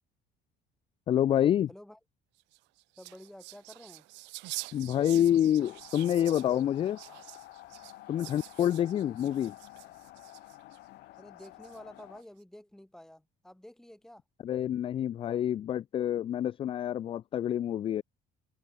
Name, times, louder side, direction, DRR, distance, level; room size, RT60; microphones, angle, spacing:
voice 1, 1.1-1.7 4.7-7.0 8.1-9.5 14.4-18.0, left 10 dB, 30° left, 0.4 m, -27 dB
voice 2, 1.7-2.0 3.0-4.1 8.1-8.4 11.2-14.2, left 1 dB, ahead, 2.5 m, -50 dB
sound 1, 2.4-10.8 11.4-12.0, right 23 dB, 80° right, 0.4 m, -46 dB
sound 2, 5.6-12.2, left 17 dB, 65° left, 1.2 m, -51 dB
open air
cardioid pair, 170°, 18 cm